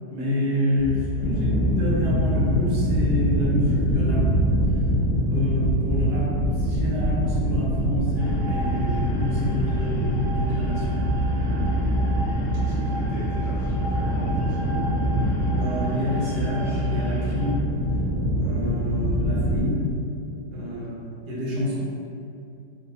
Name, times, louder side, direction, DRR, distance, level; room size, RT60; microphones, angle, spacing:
voice 1, 0.1-4.2 5.3-6.3 6.6-11.0 15.5-17.6 18.4-19.9 20.5-21.8, left 1 dB, 70° right, -6 dB, 1.3 m, -28 dB
sound 1, 0.8-19.6, equal, 45° right, 0.6 m, -24 dB
sound 2, 8.2-17.5, right 1 dB, 85° left, 0.6 m, -37 dB
voice 2, 12.6-14.7 18.4-18.7 20.6-20.9, equal, 25° left, -13 dB, 0.8 m, -41 dB
2.7 x 2.6 x 4.2 m, 2.6 s
omnidirectional pair, 1.9 m